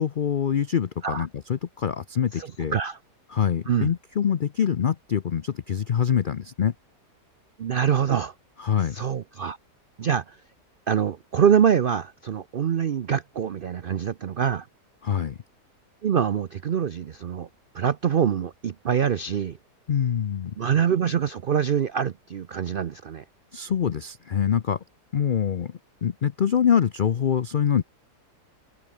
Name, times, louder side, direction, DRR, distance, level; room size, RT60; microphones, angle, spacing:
voice 1, 0.0-2.7 3.3-6.7 8.6-9.0 15.0-15.4 19.9-20.5 23.5-24.8 25.1-27.8, left 8 dB, 75° left, 0.4 m, -25 dB
voice 2, 2.3-3.0 3.7-3.9 7.6-8.3 8.9-9.6 10.0-10.4 10.9-14.7 16.0-17.5 17.7-19.6 20.6-23.2, right 8 dB, 90° right, 0.4 m, -24 dB
open air
omnidirectional pair, 1.8 m